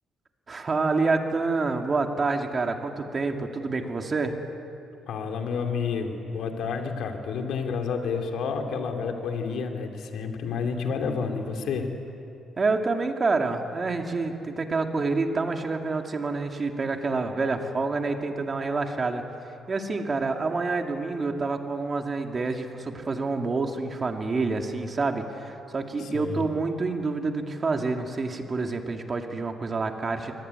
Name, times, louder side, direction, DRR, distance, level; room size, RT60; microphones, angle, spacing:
voice 1, 0.5-4.3 12.6-19.2 19.7-30.3, right 3 dB, 35° right, 4 dB, 2.4 m, -27 dB
voice 2, 5.1-11.9 26.0-26.5, left 5 dB, 75° left, 4 dB, 2.8 m, -30 dB
23.5 x 19.0 x 9.7 m, 2.8 s
cardioid pair, 90°, 0 cm